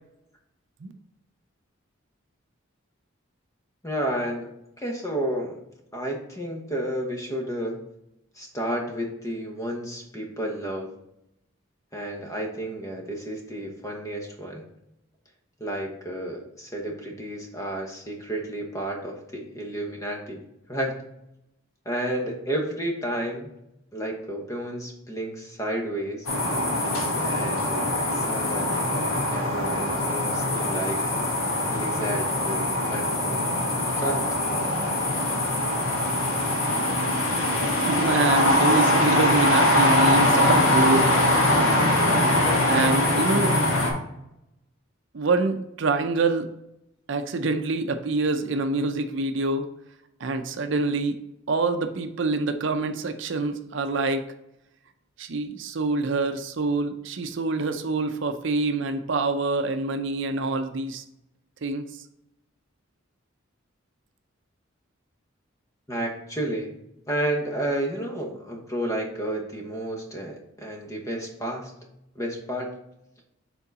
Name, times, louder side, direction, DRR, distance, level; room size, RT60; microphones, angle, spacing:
voice 1, 3.8-4.5 4.8-5.6 5.9-7.8 8.3-10.9 11.9-14.7 15.6-20.4 20.7-21.0 21.8-23.5 23.9-26.3 27.2-31.0 31.7-33.5 34.0-34.4 65.9-66.7 67.1-71.7 72.1-72.7, right 1 dB, 15° left, 1 dB, 1.0 m, -31 dB
sound 1, 26.3-43.9, left 1 dB, 80° left, 1.7 m, -22 dB
voice 2, 37.9-41.3 42.7-43.6 45.1-46.5 47.1-49.7 50.2-51.2 51.5-54.2 55.2-61.0 61.6-61.9, right 3 dB, 60° right, 7 dB, 0.5 m, -26 dB
7.1 x 3.8 x 4.0 m, 0.82 s
head